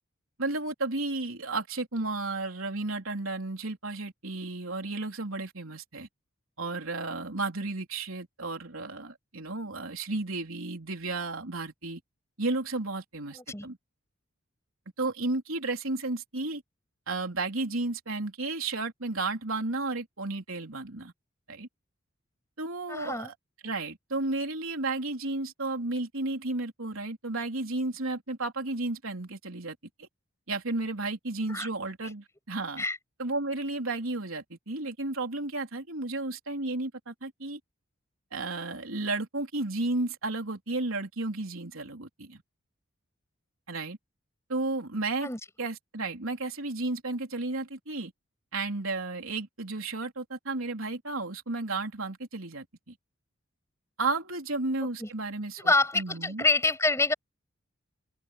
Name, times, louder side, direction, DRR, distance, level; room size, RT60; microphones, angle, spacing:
voice 1, 0.4-6.1 6.6-12.0 12.4-13.8 15.0-16.6 17.1-21.1 21.5-21.7 22.6-23.4 23.6-30.1 30.5-32.8 33.2-37.6 38.3-42.4 43.7-44.0 44.5-45.3 45.6-48.1 48.5-52.9 54.0-56.4, right 2 dB, 85° right, 3.7 m, -33 dB
voice 2, 13.3-13.7 22.9-23.3 31.5-31.7 32.8-33.0 45.2-45.4 55.0-55.1 55.6-57.1, left 2 dB, 15° left, 7.9 m, -26 dB
head